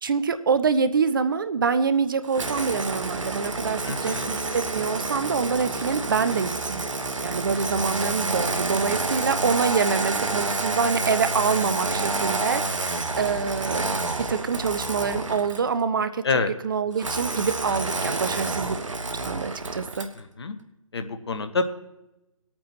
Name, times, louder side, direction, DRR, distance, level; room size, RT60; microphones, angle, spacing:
voice 1, 0.0-6.9 7.2-13.8 14.3-16.2 16.6-18.8 19.2-20.1, right 5 dB, 40° right, 12 dB, 0.5 m, -25 dB
Engine starting, 2.3-15.7 17.0-20.2, right 3 dB, 65° right, 1.0 m, -29 dB
voice 2, 3.8-4.3 16.2-16.5 20.2-20.6 20.9-21.7, left 4 dB, 50° left, 9 dB, 0.9 m, -27 dB
20.5 x 8.7 x 2.9 m, 0.95 s
figure-of-eight pair, 140°, 17 cm